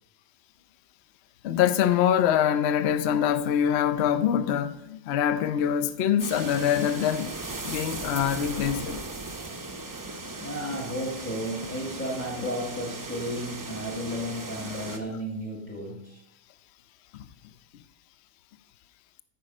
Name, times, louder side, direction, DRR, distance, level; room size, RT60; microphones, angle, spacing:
voice 1, 1.4-7.4 7.6-9.0 17.1-17.3, left 9 dB, 70° left, 0.6 m, -24 dB
sound 1, 6.2-15.0, right 2 dB, 30° right, 0.3 m, -37 dB
voice 2, 10.4-16.2, equal, 10° left, 1.2 m, -33 dB
14.0 x 5.4 x 5.3 m
omnidirectional pair, 1.8 m